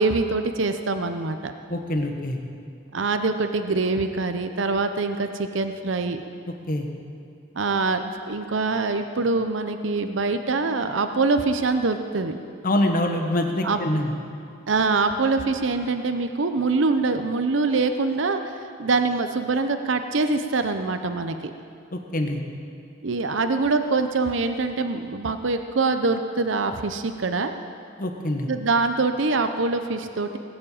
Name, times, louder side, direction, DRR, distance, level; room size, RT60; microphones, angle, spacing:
voice 1, 0.0-1.5 2.9-6.3 7.6-12.4 13.6-13.8 14.7-18.5 18.8-21.4 23.0-27.5 28.5-30.4, right 3 dB, 65° right, 8 dB, 0.7 m, -24 dB
voice 2, 1.7-2.4 6.7-6.9 12.6-14.1 21.9-22.4 28.0-28.5, left 1 dB, 45° left, 3 dB, 1.5 m, -25 dB
19.5 x 7.4 x 8.6 m, 2.5 s
head